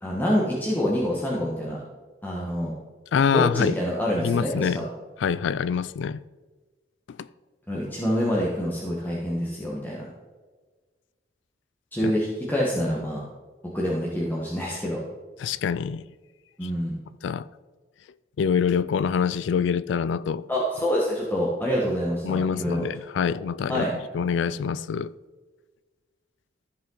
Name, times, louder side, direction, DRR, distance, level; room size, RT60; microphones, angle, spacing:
voice 1, 0.0-1.8 2.2-2.7 3.3-4.8 7.7-10.1 11.9-13.2 13.7-15.0 16.6-16.9 20.5-22.9 23.2-23.4 23.7-23.9, equal, 10° left, 1.3 m, -26 dB
voice 2, 3.1-3.7 4.2-4.8 5.2-6.2 7.2-7.3 12.0-12.1 15.4-16.0 17.2-17.4 18.4-20.4 22.2-23.9 24.1-25.1, left 6 dB, 70° left, 0.3 m, -25 dB
14.0 x 5.3 x 3.9 m
head